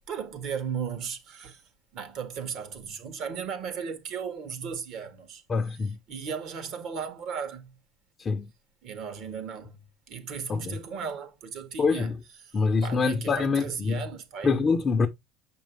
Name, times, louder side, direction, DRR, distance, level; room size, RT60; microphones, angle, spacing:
voice 1, 0.1-1.6 1.9-5.4 6.1-7.7 8.8-9.8 10.1-12.1 12.8-14.6, right 6 dB, 60° right, 1.8 m, -36 dB
voice 2, 5.5-6.0 8.2-8.5 10.5-10.8 11.8-12.2 12.5-14.0 14.4-15.1, left 4 dB, 25° left, 0.7 m, -25 dB
7.1 x 5.3 x 3.5 m
cardioid pair, 125°, 0 cm